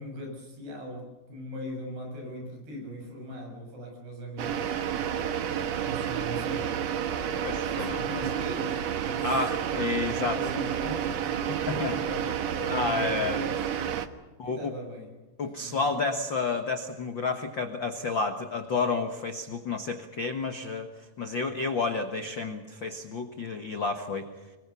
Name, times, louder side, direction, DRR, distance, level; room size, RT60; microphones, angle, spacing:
voice 1, 0.0-5.4 5.8-6.8 7.6-9.4 10.0-11.2 11.5-13.5 14.4-15.1 15.4-16.1, left 1 dB, 80° right, 2 dB, 8.9 m, -40 dB
sound 1, 4.4-14.1, right 9 dB, 65° right, 1.7 m, -30 dB
voice 2, 7.4-8.0 9.2-10.4 11.7-11.9 12.7-13.4 14.4-14.7 15.4-24.3, left 4 dB, 75° left, 6 dB, 1.0 m, -30 dB
26.0 x 22.5 x 7.0 m, 1.2 s
omnidirectional pair, 4.6 m